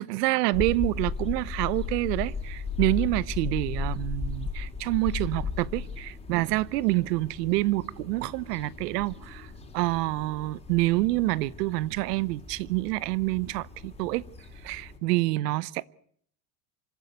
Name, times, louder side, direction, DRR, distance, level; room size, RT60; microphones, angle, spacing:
voice 1, 0.0-14.2 14.6-15.9, right 19 dB, 80° right, 0.9 m, -27 dB
sound 1, 0.5-15.0, left 4 dB, 10° left, 3.8 m, -36 dB
26.0 x 13.0 x 9.4 m
supercardioid pair, 135°, 48 cm